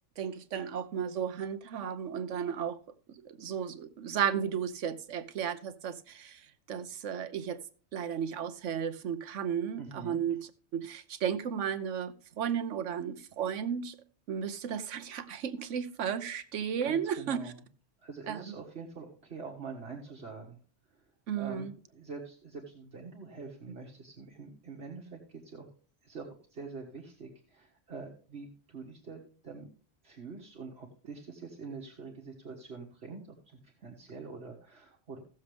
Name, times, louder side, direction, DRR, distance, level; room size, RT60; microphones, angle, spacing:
voice 1, 0.2-2.8 3.1-7.6 7.9-14.0 14.3-17.5 18.3-18.5 21.3-21.7, right 8 dB, 85° right, 1.2 m, -34 dB
voice 2, 9.8-10.2 16.8-17.6 18.0-20.6 21.4-25.7 26.0-29.7 30.0-35.2, right 4 dB, 60° right, 1.8 m, -45 dB
16.0 x 7.2 x 3.4 m
omnidirectional pair, 1.2 m